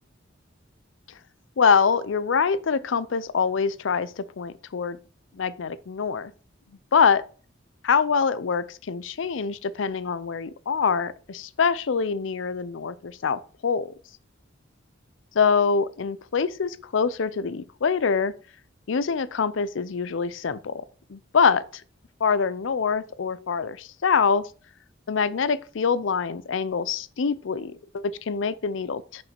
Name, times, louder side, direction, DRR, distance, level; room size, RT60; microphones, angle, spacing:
voice 1, 1.6-5.0 5.3-6.3 6.9-7.2 7.8-13.9 15.4-18.3 18.9-20.8 21.1-21.8 22.2-24.5 25.1-29.2, left 5 dB, 70° left, 0.5 m, -24 dB
6.5 x 5.9 x 4.4 m
head